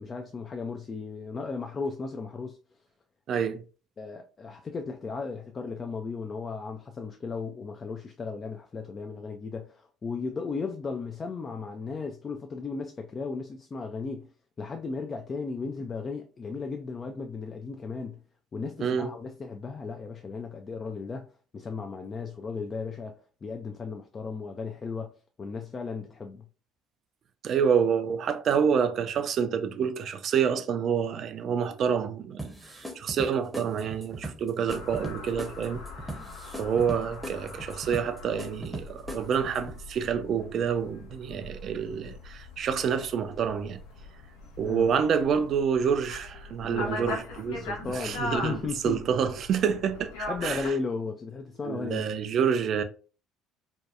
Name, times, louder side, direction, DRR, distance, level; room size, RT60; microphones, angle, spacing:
voice 1, 0.0-2.6 4.0-14.3 14.6-18.2 18.5-26.5 44.6-44.9 46.6-47.2 47.5-49.0 50.3-52.1, left 4 dB, 35° left, 0.3 m, -35 dB
voice 2, 3.3-3.6 18.8-19.1 27.4-35.8 36.6-43.8 44.6-47.7 47.9-50.7 51.6-52.8, right 7 dB, 50° right, 0.3 m, -28 dB
sound 1, 32.4-39.8, right 1 dB, 5° right, 0.7 m, -40 dB
sound 2, 34.7-50.7, left 2 dB, 75° left, 0.6 m, -41 dB
2.7 x 2.2 x 2.4 m
hypercardioid pair, 60°, 0 cm